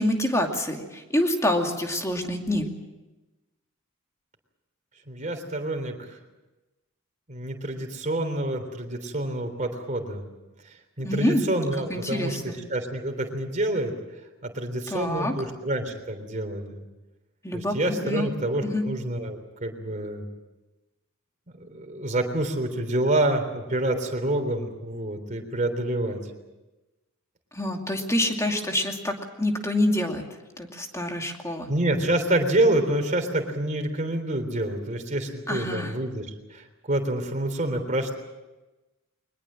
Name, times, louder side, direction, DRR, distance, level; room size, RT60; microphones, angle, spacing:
voice 1, 0.0-2.7 11.0-11.4 11.9-12.5 14.9-15.3 17.4-17.8 18.0-18.3 18.6-18.8 27.5-30.2 30.6-31.7 35.5-35.9, left 1 dB, 15° left, 3 dB, 2.5 m, -26 dB
voice 2, 5.1-6.2 7.3-10.2 11.0-13.9 14.4-16.8 17.5-20.3 21.6-26.2 31.7-38.1, right 1 dB, 35° right, 4 dB, 3.6 m, -27 dB
23.0 x 20.5 x 7.6 m, 1.1 s
head